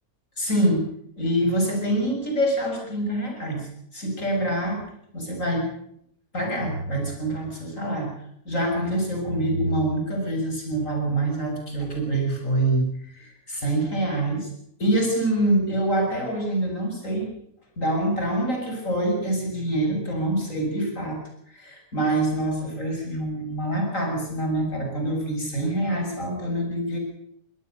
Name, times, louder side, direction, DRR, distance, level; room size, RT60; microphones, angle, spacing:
voice 1, 0.4-0.9 1.2-4.8 5.1-5.7 6.3-8.1 8.5-14.5 14.8-17.3 17.8-21.2 21.5-27.0, right 1 dB, 60° left, 2 dB, 7.5 m, -25 dB
23.5 x 18.0 x 6.8 m, 0.71 s
omnidirectional pair, 1.6 m